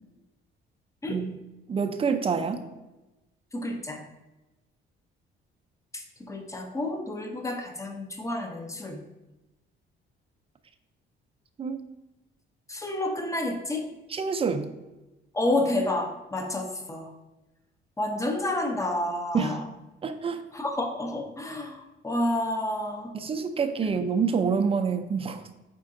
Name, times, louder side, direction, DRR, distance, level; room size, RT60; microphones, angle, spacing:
voice 1, 1.7-2.6 11.6-11.8 14.1-14.7 19.3-19.6 20.0-20.4 23.1-25.5, right 5 dB, 25° right, 7 dB, 0.4 m, -27 dB
voice 2, 3.5-4.0 5.9-9.0 12.7-13.9 15.3-17.1 18.0-19.6 20.5-23.1, left 1 dB, 15° left, 4 dB, 0.6 m, -30 dB
5.1 x 3.6 x 2.5 m, 1.0 s
cardioid pair, 100°, 21 cm